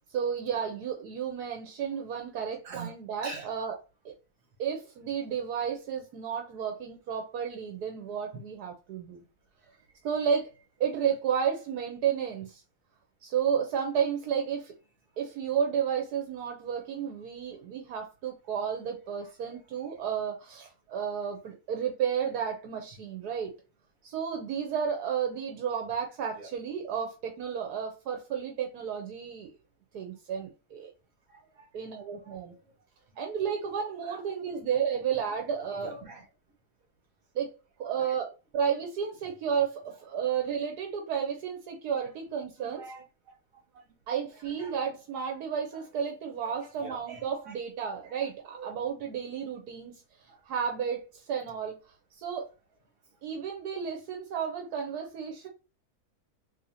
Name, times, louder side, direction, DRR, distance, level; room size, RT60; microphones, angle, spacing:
voice 1, 0.0-4.1 4.6-9.2 10.0-10.5 10.8-12.6 13.2-14.7 15.2-23.5 24.0-29.5 29.9-30.9 31.7-32.5 33.2-35.9 37.3-37.5 37.8-38.3 38.5-42.9 44.1-51.8 52.1-52.5 53.2-55.5, right 7 dB, 80° right, 1.3 m, -32 dB
voice 2, 16.9-17.3 19.2-20.0 26.4-26.5 31.6-31.7 32.2-32.6 34.0-34.2 35.7-36.3 37.8-38.2 42.0-42.1 42.6-43.6 44.3-44.7 45.7-45.9 46.3-47.6 47.9-48.3 48.5-48.8 50.3-50.4 54.9-55.1, right 4 dB, 60° right, 1.8 m, -46 dB
4.2 x 3.1 x 2.8 m
omnidirectional pair, 1.7 m